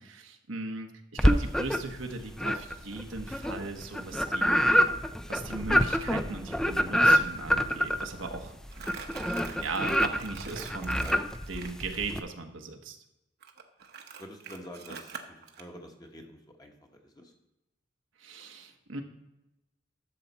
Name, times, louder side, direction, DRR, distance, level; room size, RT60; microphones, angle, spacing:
voice 1, 0.0-4.6 5.3-8.6 9.3-11.1 11.5-13.0 18.2-19.0, right 3 dB, 85° right, 4 dB, 1.2 m, -38 dB
sound 1, 1.2-2.0 2.4-12.2, equal, 5° left, 0.4 m, -26 dB
Crumpling crinkling, 8.7-11.8 13.4-15.6, right 6 dB, 55° right, 1.0 m, -44 dB
voice 2, 14.2-17.3, equal, 20° left, 2 dB, 1.3 m, -47 dB
11.5 x 7.2 x 4.2 m, 0.94 s
head